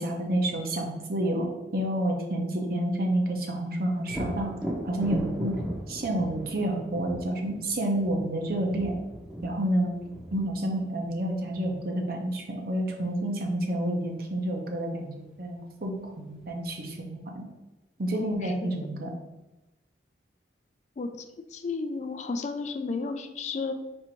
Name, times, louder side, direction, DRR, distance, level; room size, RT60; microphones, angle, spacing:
voice 1, 0.0-4.5 4.8-5.5 5.9-9.0 9.4-9.9 10.3-15.1 15.4-17.4 18.0-19.1, right 1 dB, 55° right, 2 dB, 0.7 m, -29 dB
Thunder, 4.1-11.7 15.4-15.5 16.0-16.8, right 1 dB, 5° right, 0.7 m, -38 dB
voice 2, 18.1-18.7 21.0-21.1 21.5-23.7, left 4 dB, 40° left, 7 dB, 0.3 m, -33 dB
4.4 x 2.6 x 4.4 m, 1.0 s
head